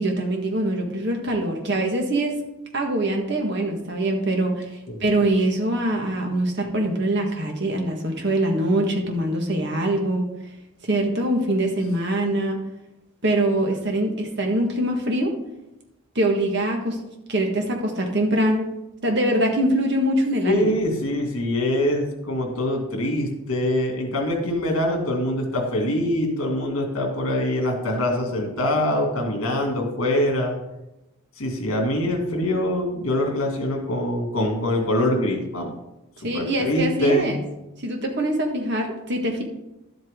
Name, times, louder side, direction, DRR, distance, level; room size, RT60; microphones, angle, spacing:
voice 1, 0.0-2.4 2.7-4.6 5.0-10.2 10.8-12.6 13.2-15.3 16.1-17.0 17.3-18.7 19.0-20.7 36.2-37.4 37.8-39.4, right 1 dB, 50° right, 2 dB, 1.7 m, -23 dB
voice 2, 20.4-30.5 31.4-35.7 36.3-37.3, left 1 dB, 65° left, 1 dB, 2.5 m, -24 dB
12.0 x 7.9 x 3.8 m, 0.94 s
head